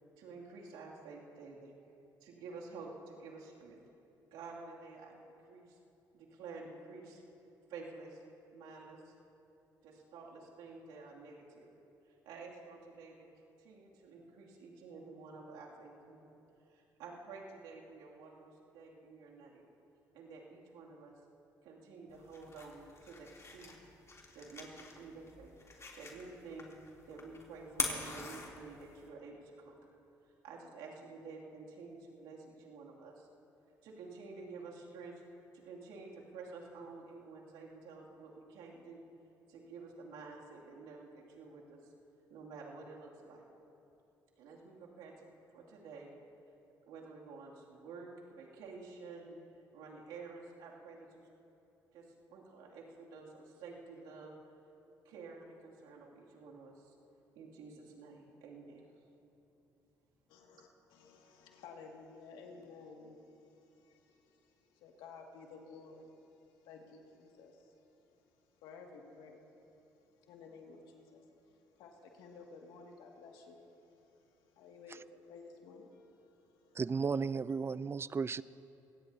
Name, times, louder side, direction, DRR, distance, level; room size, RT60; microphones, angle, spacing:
voice 1, 0.2-1.7 2.2-3.8 4.3-5.2 5.4-5.8 6.1-7.2 7.7-8.2 8.5-9.1 9.8-11.7 12.2-13.3 13.6-16.2 16.7-19.7 20.1-21.2 21.6-23.8 24.3-25.5 26.0-26.8 27.1-29.8 30.4-33.3 33.8-35.1 35.5-39.1 39.5-41.9 42.3-43.4 44.4-46.1 46.9-49.4 49.7-51.3 51.9-54.4 55.0-56.9 57.3-59.0, right 4 dB, 85° right, -3 dB, 2.6 m, -50 dB
sound 1, 22.1-29.1, left 3 dB, 35° left, 3.1 m, -44 dB
voice 2, 60.3-68.0 68.6-69.4 70.0-76.8, left 4 dB, 80° left, 1 dB, 2.1 m, -55 dB
voice 3, 76.7-78.4, right 5 dB, 30° right, 18 dB, 0.4 m, -34 dB
24.5 x 17.5 x 2.8 m, 2.9 s
supercardioid pair, 65°, 8 cm